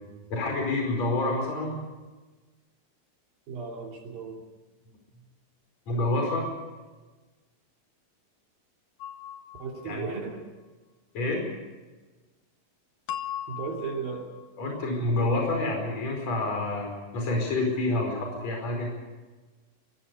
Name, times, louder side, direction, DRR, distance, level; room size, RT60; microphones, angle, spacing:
voice 1, 0.3-1.8 5.9-6.5 9.8-10.1 11.1-11.4 14.6-18.9, left 2 dB, 50° left, 1 dB, 6.1 m, -28 dB
voice 2, 3.5-4.4 9.6-10.5 13.5-14.3, right 5 dB, 80° right, 0 dB, 4.5 m, -35 dB
sound 1, 9.0-10.1 13.1-14.5, left 10 dB, 75° left, 3.3 m, -38 dB
24.5 x 22.0 x 5.3 m, 1.3 s
omnidirectional pair, 4.1 m